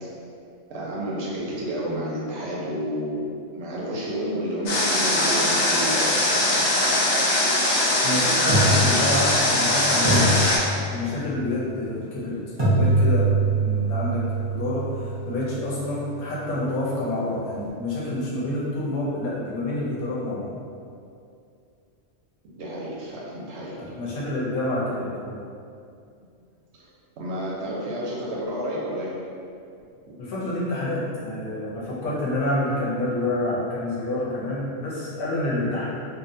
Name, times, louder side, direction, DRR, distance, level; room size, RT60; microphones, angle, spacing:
voice 1, 0.7-6.5 22.5-24.1 26.8-26.9 27.2-29.1, equal, 65° right, -5 dB, 0.8 m, -30 dB
Water, 4.7-10.6, left 1 dB, 85° left, 1.0 m, -21 dB
sound 1, 7.4-7.5 8.5-9.7 10.0-11.3 12.6-16.5, right 2 dB, 30° right, 0.4 m, -24 dB
voice 2, 8.0-10.4 10.9-12.4 12.7-20.5 23.8-25.4 30.2-35.9, left 1 dB, 55° left, -7 dB, 0.7 m, -28 dB
2.6 x 2.1 x 2.6 m, 2.4 s
omnidirectional pair, 1.3 m